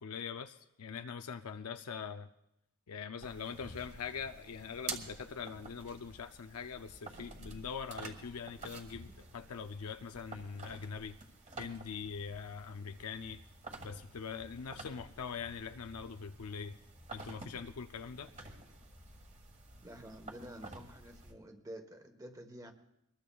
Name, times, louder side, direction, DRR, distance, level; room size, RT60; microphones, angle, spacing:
voice 1, 0.0-2.3 2.9-11.2 11.6-13.4 13.8-16.8 17.1-18.3, left 6 dB, 85° left, 7 dB, 0.5 m, -43 dB
sound 1, 3.2-21.3, right 3 dB, 30° right, 1.5 m, -50 dB
voice 2, 19.8-22.7, right 1 dB, 15° right, 6 dB, 1.2 m, -49 dB
23.5 x 20.5 x 2.3 m, 0.85 s
head